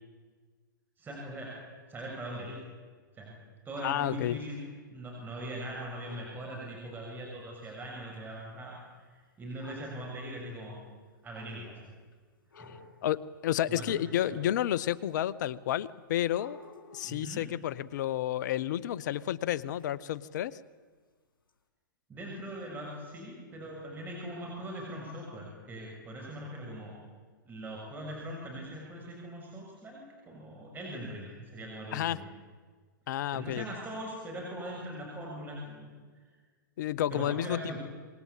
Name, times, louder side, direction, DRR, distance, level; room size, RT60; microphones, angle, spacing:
voice 1, 1.0-1.6 1.9-2.6 3.1-3.4 3.7-4.6 4.9-10.8 11.2-11.8 12.6-12.8 13.7-14.4 17.0-17.5 22.1-27.0 27.4-32.3 33.3-36.2 37.1-37.8, right 1 dB, 15° right, -2 dB, 6.9 m, -41 dB
voice 2, 3.8-4.4 13.0-16.6 16.9-20.6 31.9-32.2 33.1-33.6 36.8-37.8, left 12 dB, 60° left, 19 dB, 0.9 m, -31 dB
sound 1, 5.7-6.4 7.6-7.8 8.1-8.2 9.6-10.0 11.0-11.1 12.1-12.2 12.5-13.0 13.7-14.3 15.1-15.2 16.2-17.3 19.8-19.9 20.5-20.6 21.5-21.6, left 4 dB, 85° left, 4.8 m, -52 dB
26.0 x 21.5 x 8.5 m, 1.5 s
hypercardioid pair, 120°, 11 cm